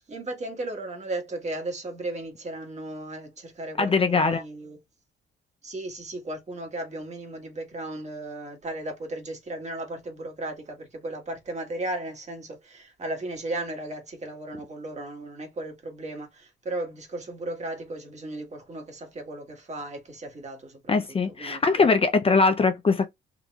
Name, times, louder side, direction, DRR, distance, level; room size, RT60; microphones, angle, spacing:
voice 1, 0.0-4.8 5.6-21.8, right 2 dB, 35° right, 1.6 m, -36 dB
voice 2, 3.8-4.4 20.9-23.1, left 4 dB, 30° left, 0.5 m, -21 dB
3.8 x 2.8 x 2.3 m
cardioid pair, 90°, 20 cm